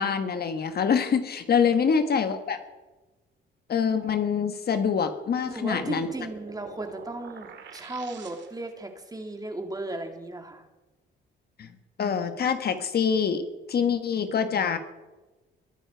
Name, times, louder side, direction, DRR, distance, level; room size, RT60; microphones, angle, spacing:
voice 1, 0.0-2.6 3.7-6.1 11.6-11.7 12.0-14.8, left 6 dB, 55° left, 8 dB, 1.4 m, -25 dB
sound 1, 5.2-8.8, right 6 dB, 65° right, 2.2 m, -46 dB
voice 2, 5.4-10.7, right 2 dB, 20° right, 4 dB, 2.5 m, -36 dB
22.0 x 10.0 x 4.6 m, 1.1 s
cardioid pair, 90°, 20 cm